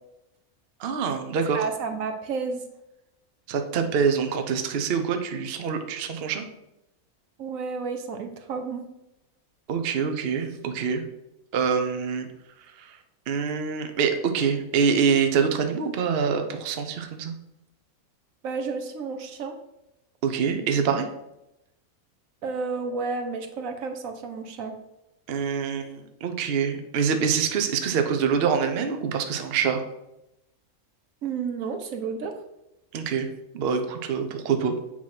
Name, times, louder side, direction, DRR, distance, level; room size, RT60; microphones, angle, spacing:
voice 1, 0.8-1.6 3.5-6.4 9.7-11.0 11.5-12.3 12.8-13.0 13.3-17.3 20.2-21.1 25.3-29.8 32.9-33.3 33.5-34.8, right 6 dB, 50° right, 6 dB, 0.8 m, -25 dB
voice 2, 1.5-2.6 7.4-8.9 18.4-19.6 22.4-24.7 31.2-32.4, right 4 dB, 70° right, 5 dB, 1.1 m, -31 dB
8.4 x 3.0 x 5.8 m, 0.88 s
omnidirectional pair, 1.5 m